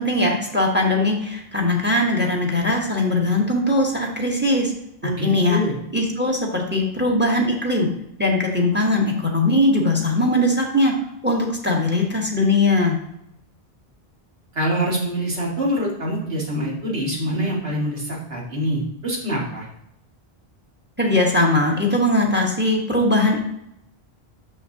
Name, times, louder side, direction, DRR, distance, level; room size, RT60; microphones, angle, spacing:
voice 1, 0.0-4.7 5.0-5.6 5.9-7.9 8.2-10.9 11.2-13.0 21.0-23.4, left 1 dB, 10° right, 0 dB, 1.1 m, -20 dB
voice 2, 5.0-5.7 14.5-19.7, equal, 75° right, -4 dB, 2.1 m, -25 dB
6.5 x 6.4 x 2.8 m, 0.77 s
omnidirectional pair, 1.0 m